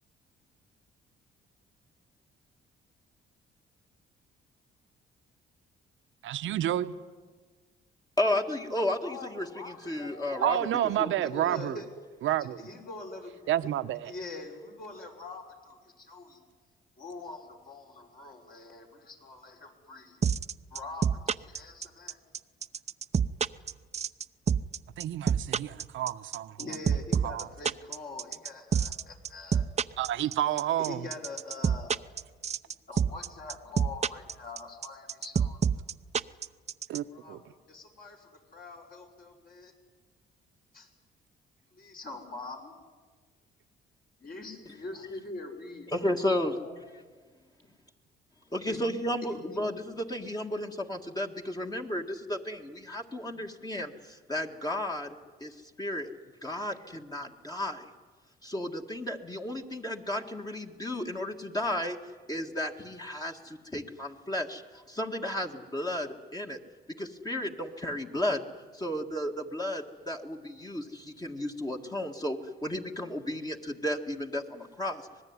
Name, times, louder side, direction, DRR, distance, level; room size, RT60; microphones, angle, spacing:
voice 1, 6.2-6.9 10.4-11.8 12.2-12.7 13.5-14.1 25.0-26.6 27.2-27.5 30.0-31.1 36.9-37.4, right 12 dB, 80° right, 1.0 m, -30 dB
voice 2, 8.2-10.6 11.0-11.1 11.5-11.6 45.9-46.6 48.5-56.1 56.4-57.9 58.4-62.0 62.3-66.6 67.0-68.4 68.7-75.1, left 1 dB, 20° left, 1.9 m, -33 dB
voice 3, 9.0-10.8 11.2-11.9 12.4-13.4 13.6-13.7 14.1-16.4 17.0-20.3 20.7-22.2 26.6-29.6 30.8-32.0 32.9-35.9 36.2-36.4 36.9-39.7 40.7-40.9 41.7-42.8 44.2-46.7 48.7-48.8 49.3-49.7 53.2-53.3, left 3 dB, 45° left, 6.1 m, -44 dB
sound 1, 20.2-37.0, right 7 dB, 35° right, 0.7 m, -27 dB
25.5 x 20.0 x 9.7 m
cardioid pair, 90°, 20 cm